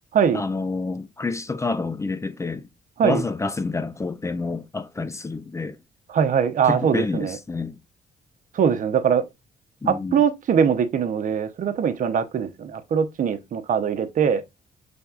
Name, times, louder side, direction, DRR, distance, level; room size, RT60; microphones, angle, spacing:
voice 1, 0.3-2.7 3.0-5.8 6.6-7.8 9.8-10.2, left 3 dB, 20° left, 0.4 m, -28 dB
voice 2, 6.1-7.4 8.5-9.3 9.9-14.4, right 7 dB, 55° right, 0.7 m, -22 dB
5.3 x 3.5 x 2.3 m
cardioid pair, 80°, 16 cm